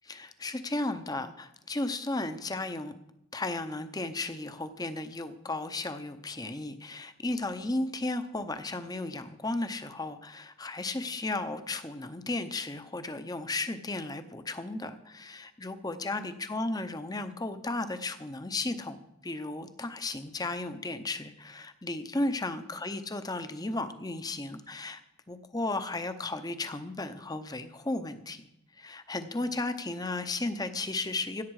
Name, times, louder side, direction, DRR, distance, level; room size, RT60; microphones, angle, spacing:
voice 1, 0.1-2.9 3.3-25.0 25.3-28.5 28.8-31.4, left 2 dB, 20° left, 10 dB, 0.7 m, -34 dB
16.5 x 8.5 x 4.8 m, 0.83 s
head